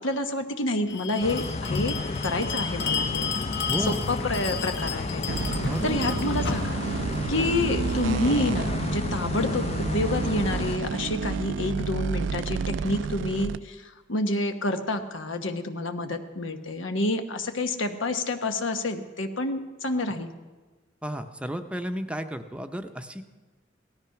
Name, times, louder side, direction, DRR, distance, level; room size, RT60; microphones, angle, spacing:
voice 1, 0.0-1.9 2.2-3.3 3.8-5.4 5.8-6.8 7.3-20.3, left 2 dB, 90° left, 7 dB, 1.2 m, -28 dB
Bell, 0.9-8.1, left 6 dB, 60° left, 1.2 m, -34 dB
sound 1, 1.2-10.8, left 3 dB, 35° left, 0.5 m, -32 dB
voice 2, 3.7-4.0 5.7-6.0 21.0-23.2, equal, 5° right, 7 dB, 0.6 m, -33 dB
sound 2, 5.3-13.6, right 5 dB, 70° right, 0.4 m, -30 dB
17.5 x 13.5 x 5.8 m, 1.3 s
head